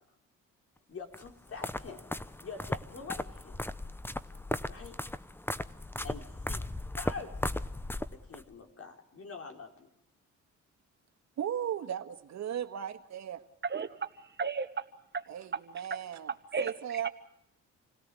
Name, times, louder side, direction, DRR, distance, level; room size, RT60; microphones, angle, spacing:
voice 1, 0.9-2.0 2.4-3.6 4.7-5.0 6.0-6.6 6.9-7.6 8.1-9.9, left 5 dB, 50° left, 3 dB, 4.4 m, -45 dB
sound 1, 1.1-8.4, left 1 dB, 5° left, 0.8 m, -37 dB
voice 2, 11.4-13.4 15.3-16.3 16.6-17.1, right 9 dB, 65° right, 8 dB, 1.7 m, -36 dB
voice 3, 13.6-14.1 14.4-14.8 15.1-15.2 16.5-16.7, right 5 dB, 35° right, 9 dB, 1.4 m, -33 dB
28.0 x 17.5 x 7.7 m, 0.78 s
cardioid pair, 90°, 30 cm